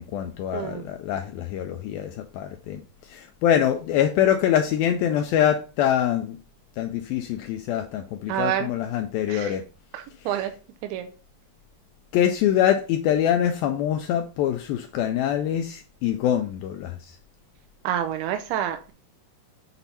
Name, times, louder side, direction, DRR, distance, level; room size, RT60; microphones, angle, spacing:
voice 1, 0.0-2.8 3.1-6.4 6.8-9.6 12.1-17.1, left 10 dB, 90° left, 2.1 m, -24 dB
voice 2, 0.5-0.8 8.3-8.7 9.3-9.6 9.9-10.5 10.9-11.1 17.8-18.9, right 11 dB, 80° right, 2.4 m, -28 dB
7.0 x 4.2 x 5.3 m
omnidirectional pair, 4.8 m